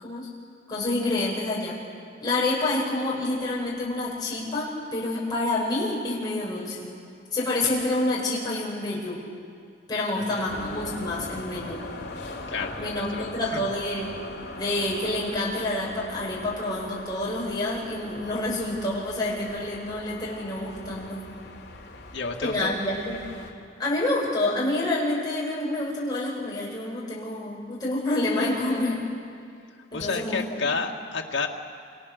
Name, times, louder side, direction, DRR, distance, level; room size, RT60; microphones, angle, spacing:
voice 1, 0.7-1.8 2.2-6.9 7.3-9.2 9.9-11.8 12.6-14.2 14.6-21.2 22.4-23.2 23.8-29.0 29.9-30.6, left 2 dB, 20° left, -6 dB, 7.2 m, -28 dB
voice 2, 10.1-10.5 12.5-13.7 22.1-22.7 29.9-31.5, left 4 dB, 80° left, 0 dB, 2.0 m, -31 dB
sound 1, 10.5-23.5, left 2 dB, 55° left, 2.9 m, -40 dB
28.5 x 27.5 x 6.7 m, 2.3 s
head